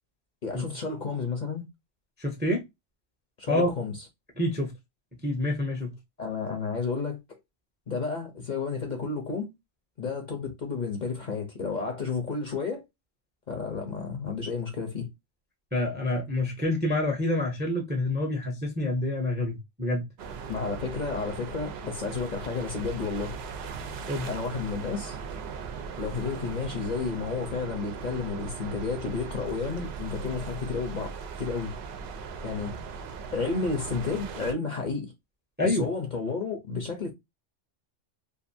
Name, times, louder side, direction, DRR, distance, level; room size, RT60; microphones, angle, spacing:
voice 1, 0.4-1.6 3.4-4.0 6.2-7.4 7.9-9.5 10.0-12.8 13.5-15.1 20.5-23.3 24.2-25.2 26.0-31.7 32.4-33.1 33.3-35.1 35.6-37.1, left 4 dB, 45° left, 0.7 m, -32 dB
voice 2, 2.2-2.6 3.5-3.7 4.4-4.7 5.2-5.9 15.7-20.0 24.1-24.3 35.6-35.9, left 1 dB, 10° right, 0.5 m, -27 dB
sound 1, 20.2-34.5, right 5 dB, 65° right, 0.7 m, -38 dB
2.6 x 2.5 x 2.5 m
omnidirectional pair, 1.2 m